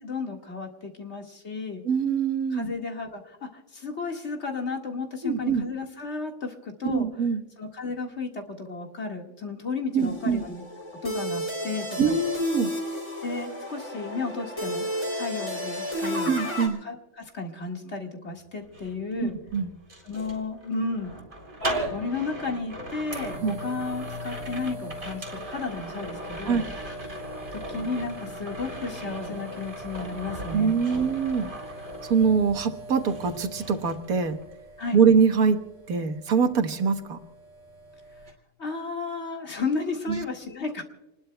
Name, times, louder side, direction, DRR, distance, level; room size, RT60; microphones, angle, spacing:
voice 1, 0.0-1.8 2.5-7.1 7.6-10.6 11.0-12.2 13.2-14.9 15.2-16.3 16.8-19.4 20.0-21.1 21.9-26.7 27.5-30.7 34.8-35.0 38.6-40.8, left 4 dB, 50° left, 2 dB, 2.1 m, -33 dB
voice 2, 1.9-2.7 5.2-5.7 6.8-7.4 9.9-10.4 12.0-12.7 16.3-16.8 19.2-19.7 23.4-23.6 26.4-26.6 30.5-31.5 32.0-34.4 34.9-37.2 40.1-40.2, right 6 dB, 80° right, 7 dB, 1.7 m, -24 dB
sound 1, 10.0-16.7, equal, 25° left, 3.2 m, -32 dB
sound 2, 18.6-32.7 33.0-34.5 34.8-35.1, right 1 dB, 55° right, 4.0 m, -39 dB
sound 3, 21.6-38.3, equal, 30° right, 3.4 m, -41 dB
28.5 x 20.5 x 2.2 m, 1.0 s
omnidirectional pair, 1.5 m